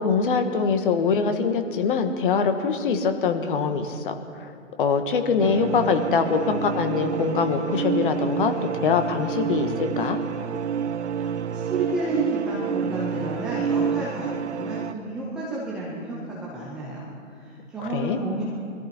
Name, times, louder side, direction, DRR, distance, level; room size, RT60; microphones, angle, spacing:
voice 1, 0.0-4.1 4.4-4.5 4.8-10.2 17.9-18.2, left 5 dB, 40° left, 7 dB, 1.5 m, -23 dB
sound 1, 5.4-14.9, right 7 dB, 60° right, 0.7 m, -28 dB
voice 2, 11.5-17.1 17.4-18.4, right 2 dB, ahead, -8 dB, 0.5 m, -31 dB
22.5 x 14.0 x 4.4 m, 2.6 s
figure-of-eight pair, 140°, 40 cm